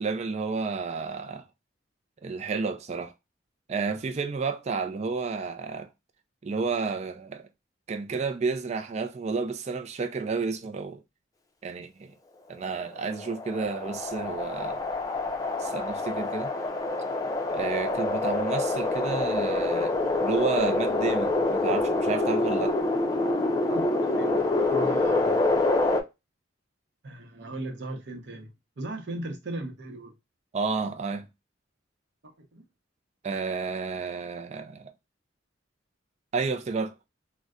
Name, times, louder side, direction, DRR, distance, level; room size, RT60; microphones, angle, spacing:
voice 1, 0.0-1.4 2.2-3.1 3.7-5.9 6.4-7.5 7.9-11.0 11.6-12.1 12.5-14.8 15.6-16.5 17.5-22.8 30.5-31.3 33.2-34.9 36.3-36.9, right 4 dB, 35° right, 0.4 m, -31 dB
sound 1, 12.8-26.0, left 2 dB, 20° left, 0.5 m, -26 dB
voice 2, 23.7-25.4 27.0-30.1 32.2-32.6, right 2 dB, 65° right, 0.8 m, -38 dB
3.9 x 2.1 x 2.3 m
head